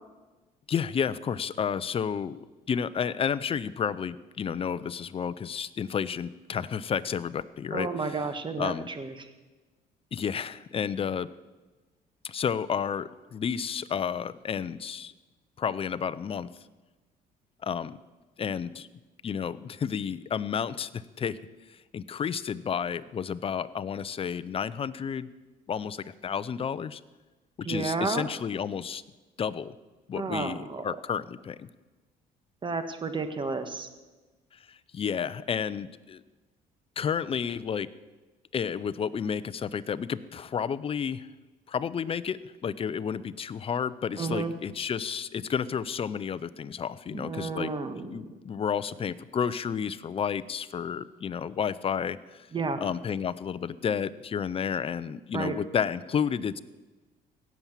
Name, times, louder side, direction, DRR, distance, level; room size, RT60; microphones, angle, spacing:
voice 1, 0.7-8.2 8.6-8.9 10.1-11.3 12.2-15.1 15.6-16.5 17.6-18.0 18.4-18.9 19.2-21.4 21.9-25.3 25.7-27.0 27.7-29.0 29.4-29.8 30.1-31.7 34.7-36.2 37.0-37.9 38.5-41.3 41.7-42.4 42.6-47.7 48.1-52.5 52.8-56.6, left 7 dB, 35° left, 16 dB, 0.6 m, -31 dB
voice 2, 7.7-9.1 27.6-28.3 30.2-30.8 32.6-33.9 44.2-44.5 47.1-48.4 52.5-52.8 55.3-55.6, right 4 dB, 30° right, 9 dB, 1.5 m, -32 dB
17.5 x 7.3 x 7.4 m, 1.2 s
cardioid pair, 110°, 17 cm